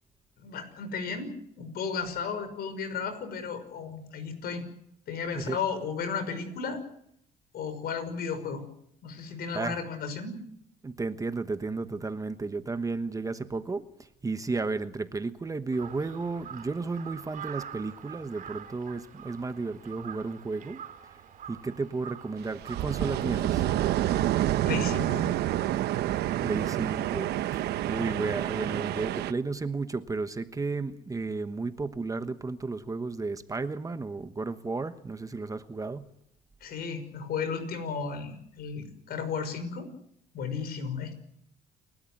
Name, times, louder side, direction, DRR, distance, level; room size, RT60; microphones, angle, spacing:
voice 1, 0.4-4.6 5.1-6.8 7.5-8.6 9.0-10.4 24.7-25.3 36.6-39.9 40.3-41.1, left 5 dB, 65° left, 10 dB, 5.9 m, -34 dB
voice 2, 10.8-20.8 21.5-23.7 26.4-36.1, right 3 dB, 20° right, 10 dB, 1.2 m, -33 dB
Crow, 15.7-25.5, right 9 dB, 55° right, 2.9 m, -46 dB
sound 1, 22.4-29.3, right 13 dB, 75° right, 1.1 m, -28 dB
29.0 x 13.0 x 9.4 m, 0.71 s
cardioid pair, 110°, 17 cm